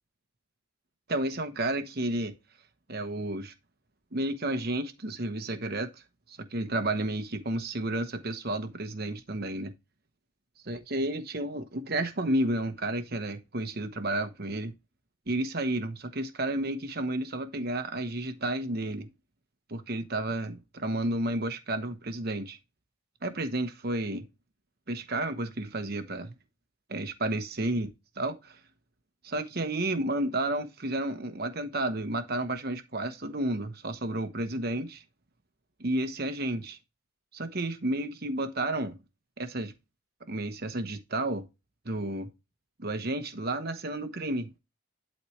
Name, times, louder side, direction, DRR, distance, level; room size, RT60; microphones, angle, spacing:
voice 1, 1.1-2.3 2.9-3.5 4.1-5.9 6.3-9.7 10.7-14.7 15.3-19.1 19.7-22.6 23.2-24.2 24.9-26.3 26.9-27.9 28.2-28.6 29.2-35.0 35.8-36.8 37.3-39.0 39.4-39.7 40.3-41.4 41.8-42.3 42.8-44.6, right 1 dB, 45° right, 1.1 m, -31 dB
11.5 x 4.2 x 3.2 m
head